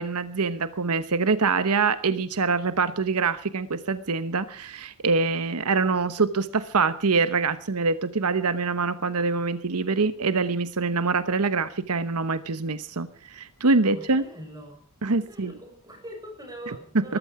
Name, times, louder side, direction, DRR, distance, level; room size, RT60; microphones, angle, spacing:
voice 1, 0.0-14.2 15.0-15.5 16.9-17.2, right 4 dB, 85° right, 12 dB, 1.0 m, -25 dB
voice 2, 13.8-14.8 15.2-17.2, equal, 15° right, 1 dB, 7.7 m, -42 dB
20.0 x 14.5 x 4.9 m, 0.42 s
head